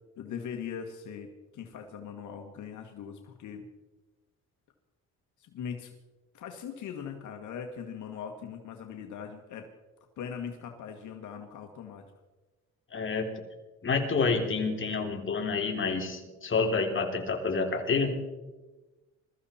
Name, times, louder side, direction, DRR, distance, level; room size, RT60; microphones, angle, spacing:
voice 1, 0.2-3.7 5.4-5.9 6.3-9.7 10.2-12.0, left 7 dB, 75° left, 4 dB, 1.7 m, -40 dB
voice 2, 12.9-13.3 13.8-18.2, left 4 dB, 40° left, 3 dB, 3.2 m, -28 dB
22.0 x 14.0 x 4.3 m, 1.1 s
cardioid pair, 90°, 30 cm